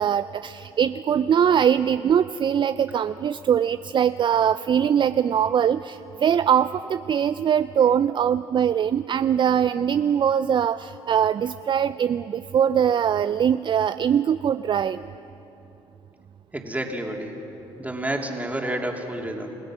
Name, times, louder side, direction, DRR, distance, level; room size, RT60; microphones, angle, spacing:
voice 1, 0.0-15.1, right 8 dB, 40° right, 13 dB, 0.5 m, -22 dB
voice 2, 16.5-17.3 17.8-19.6, right 1 dB, 15° right, 1 dB, 3.1 m, -29 dB
29.0 x 16.5 x 6.3 m, 3.0 s
supercardioid pair, 65°, 12 cm